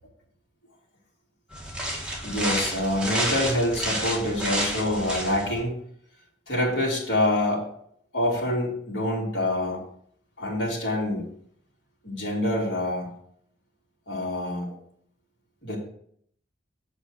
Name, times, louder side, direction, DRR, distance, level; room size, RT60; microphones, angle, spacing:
sound 1, 1.5-5.6, right 1 dB, 5° right, 2.0 m, -30 dB
voice 1, 2.2-5.8 6.5-7.7 8.1-9.8 10.4-11.3 12.0-13.1 14.1-14.7 15.6-15.8, left 1 dB, 75° left, -4 dB, 3.7 m, -26 dB
8.4 x 6.4 x 4.8 m, 0.64 s
head